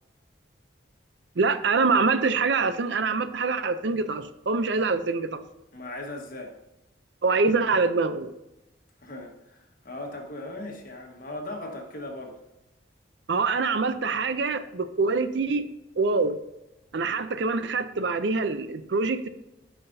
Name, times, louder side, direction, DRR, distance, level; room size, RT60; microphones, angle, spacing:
voice 1, 1.4-5.4 7.2-8.3 13.3-15.6 16.0-16.4 16.9-19.3, right 4 dB, 60° right, 11 dB, 0.5 m, -25 dB
voice 2, 5.7-6.6 9.0-12.4, left 1 dB, 45° left, 1 dB, 1.4 m, -38 dB
13.5 x 5.8 x 2.7 m, 0.92 s
head